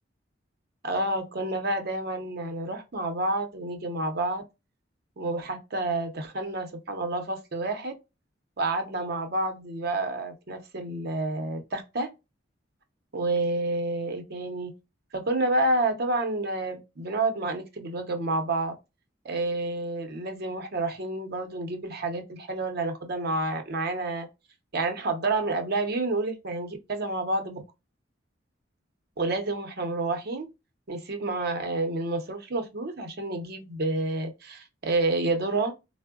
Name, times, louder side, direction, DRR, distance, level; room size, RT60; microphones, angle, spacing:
voice 1, 0.8-4.4 5.2-7.9 8.6-12.1 13.1-14.7 15.1-18.7 19.2-24.3 24.7-27.6 29.2-30.5 30.9-35.7, right 2 dB, 55° right, 0.7 m, -29 dB
3.6 x 2.0 x 2.3 m
head